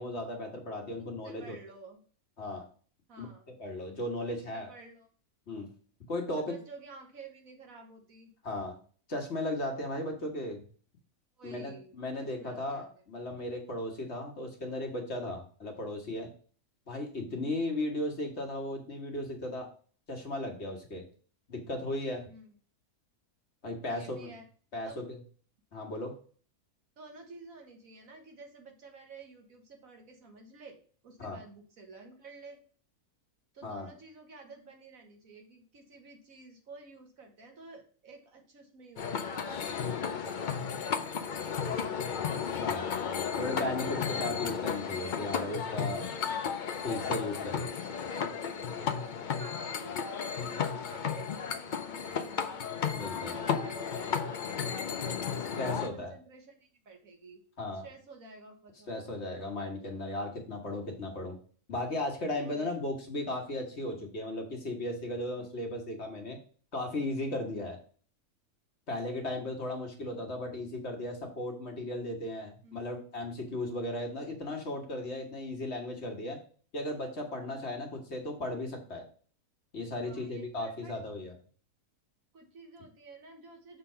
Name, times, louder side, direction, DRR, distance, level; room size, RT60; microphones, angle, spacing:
voice 1, 0.0-1.6 2.4-2.6 3.2-3.3 3.6-4.7 5.5-5.7 6.1-6.5 8.4-8.7 9.1-10.6 11.4-16.3 16.9-19.7 20.1-21.0 21.5-22.2 23.6-24.3 24.7-25.2 25.7-26.1 31.2-31.4 33.6-33.9 42.6-42.9 43.4-46.1 46.8-47.7 48.2-48.3 52.9-53.3 55.5-56.1 57.6-57.8 58.9-61.4 61.7-66.4 66.7-67.8 68.9-76.4 76.7-79.0 79.7-81.3, left 1 dB, 45° left, 2 dB, 1.6 m, -36 dB
voice 2, 1.2-2.0 3.1-3.6 4.3-5.1 6.3-8.3 11.4-12.9 22.3-22.5 23.9-24.5 24.8-25.0 27.0-30.8 31.0-32.6 33.5-41.1 41.4-42.3 46.2-46.5 47.8-48.4 49.0-52.6 53.0-57.4 57.7-59.1 62.4-62.7 65.3-65.5 67.4-67.6 72.6-72.8 80.1-80.9 82.3-83.8, right 3 dB, 65° right, 3 dB, 1.7 m, -51 dB
sound 1, 39.0-55.9, left 6 dB, 85° left, 0.4 m, -34 dB
6.6 x 3.8 x 5.5 m, 0.43 s
omnidirectional pair, 1.6 m